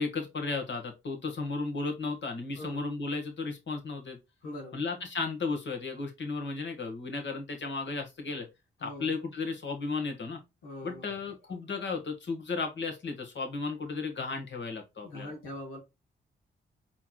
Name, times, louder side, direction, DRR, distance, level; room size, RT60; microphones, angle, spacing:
voice 1, 0.0-4.2 4.7-8.5 8.8-10.4 10.8-15.3, left 4 dB, 60° left, 1.8 m, -34 dB
voice 2, 4.4-4.8 8.8-9.1 10.6-11.2 15.0-15.8, left 1 dB, 85° left, 1.2 m, -42 dB
4.6 x 4.5 x 2.3 m
supercardioid pair, 45°, 21 cm